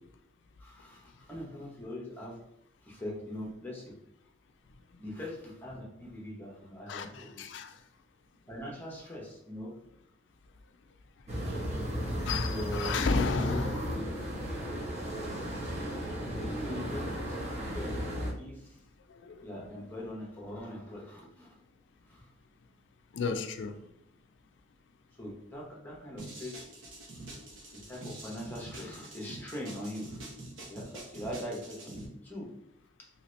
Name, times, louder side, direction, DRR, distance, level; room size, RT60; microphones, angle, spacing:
voice 1, 0.6-2.4 2.8-3.9 5.0-7.5 8.5-9.7 12.4-13.0 13.4-14.0 16.3-17.4 17.6-18.1 18.4-18.8 19.4-21.6 22.1-22.3 25.2-26.5 27.7-30.4 30.7-32.5, left 1 dB, 10° left, 0.7 m, -41 dB
voice 2, 6.9-7.8 12.3-13.8 15.9-16.0 16.9-17.0 19.1-19.8 23.1-23.8, left 4 dB, 65° left, 0.4 m, -33 dB
sound 1, 11.3-18.3, equal, 35° right, 0.9 m, -35 dB
sound 2, 26.2-32.1, right 2 dB, 80° right, 0.9 m, -46 dB
2.9 x 2.8 x 3.0 m
head